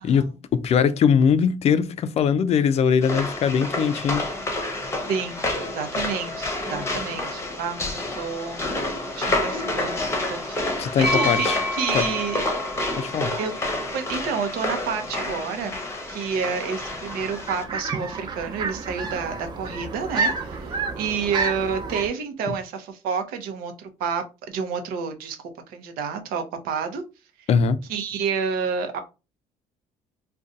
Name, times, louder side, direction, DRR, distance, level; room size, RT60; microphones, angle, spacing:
voice 1, 0.0-4.3 10.8-11.6 11.9-12.1 13.0-13.3 22.5-22.6 27.5-27.8, left 7 dB, 45° left, 0.4 m, -21 dB
sound 1, 3.0-17.6, left 2 dB, 20° left, 0.8 m, -29 dB
voice 2, 5.1-8.7 9.2-12.4 13.4-13.5 13.9-15.8 16.1-27.0 27.9-29.0, right 6 dB, 85° right, 0.7 m, -29 dB
sound 2, 11.0-14.8, left 1 dB, ahead, 1.1 m, -31 dB
sound 3, 16.8-22.1, right 4 dB, 30° right, 0.7 m, -30 dB
2.5 x 2.3 x 3.9 m
cardioid pair, 115°, 15 cm